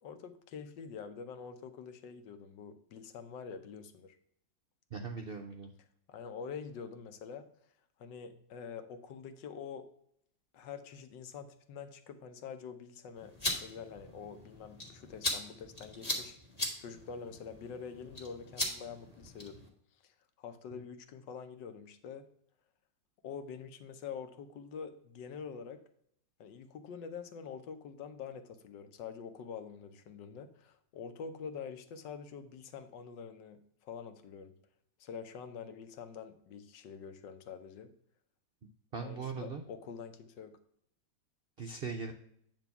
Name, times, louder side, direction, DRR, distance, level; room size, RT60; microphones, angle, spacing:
voice 1, 0.0-4.2 6.1-7.4 8.0-9.8 10.5-13.3 13.6-16.4 16.8-19.6 20.0-20.1 20.4-22.2 23.2-25.8 26.4-34.5 35.0-37.9 39.0-40.6, left 6 dB, 80° left, 8 dB, 1.5 m, -46 dB
voice 2, 4.9-5.7 20.7-20.8 38.9-39.6 41.6-42.1, right 5 dB, 70° right, 4 dB, 0.5 m, -40 dB
sound 1, 13.2-19.7, left 1 dB, 20° left, 1.8 m, -39 dB
9.1 x 3.0 x 5.7 m, 0.68 s
omnidirectional pair, 1.9 m